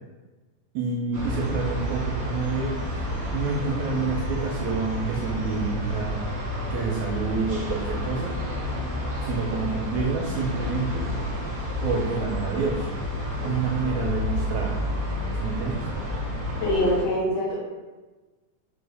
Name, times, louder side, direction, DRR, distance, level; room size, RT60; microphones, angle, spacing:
voice 1, 0.7-2.7 3.3-6.2 6.7-8.4 9.2-11.1 11.8-12.9 13.4-14.8 15.4-15.8, right 4 dB, 80° right, -1 dB, 1.7 m, -28 dB
sound 1, 1.1-17.0, equal, 65° right, 0.9 m, -30 dB
voice 2, 16.6-17.6, left 1 dB, 70° left, -5 dB, 1.6 m, -24 dB
5.9 x 2.0 x 3.3 m, 1.2 s
omnidirectional pair, 3.6 m